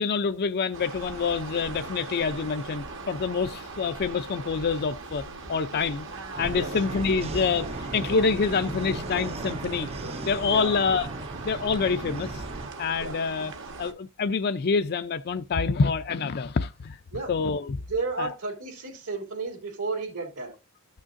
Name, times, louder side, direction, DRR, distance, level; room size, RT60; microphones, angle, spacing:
voice 1, 0.0-5.2 5.5-6.1 6.4-9.9 10.2-11.1 11.4-12.4 12.8-13.5 13.8-17.0 17.3-17.8 18.2-18.3, left 5 dB, 45° left, 0.4 m, -26 dB
sound 1, 0.7-13.9, right 3 dB, 60° right, 1.4 m, -39 dB
sound 2, 6.3-12.7, right 2 dB, 25° right, 0.5 m, -37 dB
voice 2, 10.4-10.8 13.0-13.2 17.1-17.3 17.9-20.5, right 3 dB, 75° right, 3.2 m, -32 dB
14.0 x 6.2 x 2.6 m
head